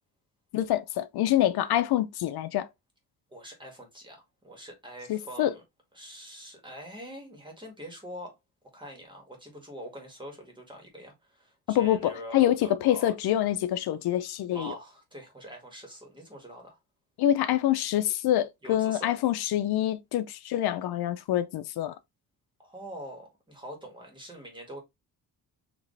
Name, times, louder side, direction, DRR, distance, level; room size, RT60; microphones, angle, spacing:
voice 1, 0.5-2.7 5.1-5.5 11.7-14.7 17.2-22.0, left 12 dB, 80° left, 0.6 m, -26 dB
voice 2, 3.3-4.2 4.4-5.6 5.9-8.4 8.7-13.2 14.5-16.8 18.6-19.2 22.6-24.8, equal, 10° right, 1.9 m, -44 dB
5.1 x 3.0 x 3.2 m
cardioid pair, 130°, 37 cm